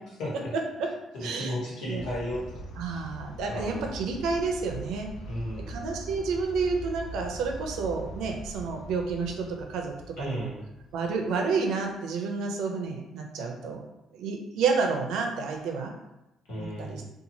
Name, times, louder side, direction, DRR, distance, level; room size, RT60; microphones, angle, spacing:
voice 1, 0.2-0.5 1.1-2.6 2.9-3.0 3.5-3.8 5.3-5.7 10.2-10.6 16.5-17.1, left 1 dB, 85° left, -6 dB, 1.2 m, -34 dB
voice 2, 1.2-1.6 1.9-2.0 2.8-5.1 5.7-10.5 10.9-13.8 14.1-15.9 16.5-17.0, right 4 dB, 85° right, 3 dB, 0.5 m, -30 dB
sound 1, 1.9-11.7, right 1 dB, 70° left, 0.4 m, -42 dB
2.9 x 2.3 x 2.7 m, 0.92 s
cardioid pair, 175°, 0 cm